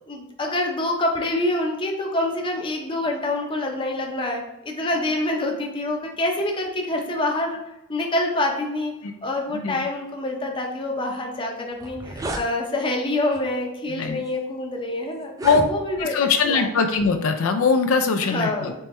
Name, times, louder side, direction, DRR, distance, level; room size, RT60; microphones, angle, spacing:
voice 1, 0.1-7.6 7.9-8.9 9.2-16.2 16.5-16.7 18.3-18.7, left 1 dB, 25° left, 1 dB, 0.6 m, -26 dB
voice 2, 9.5-9.9 13.9-14.2 15.4-15.6 16.0-18.7, left 4 dB, 80° left, 5 dB, 0.4 m, -21 dB
sound 1, 11.3-11.4 11.7-12.5 13.3-13.6 14.3-14.4 15.2-16.1, right 1 dB, 15° right, 0.3 m, -32 dB
4.4 x 3.3 x 3.1 m, 0.93 s
head